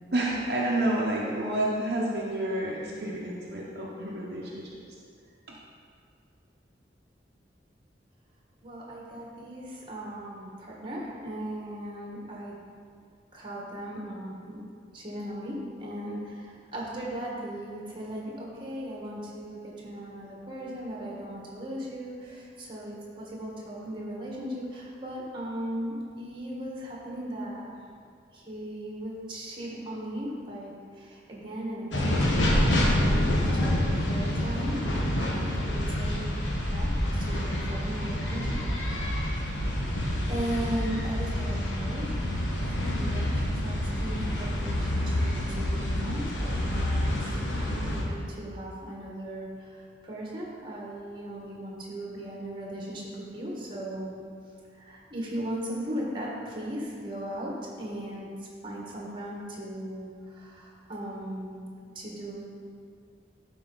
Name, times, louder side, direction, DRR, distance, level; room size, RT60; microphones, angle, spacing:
voice 1, 0.1-4.7 5.5-5.6, right 1 dB, 55° right, -4 dB, 0.8 m, -29 dB
voice 2, 8.6-12.6 13.3-14.6 14.9-27.7 28.3-36.3 36.7-38.5 38.7-39.3 40.3-54.1 54.8-57.5 57.8-58.3 58.6-61.7 61.9-62.6, right 1 dB, 25° right, -3 dB, 1.4 m, -37 dB
sound 1, 31.9-48.0, left 1 dB, 85° left, 1.2 m, -27 dB
11.5 x 4.6 x 3.9 m, 2.2 s
head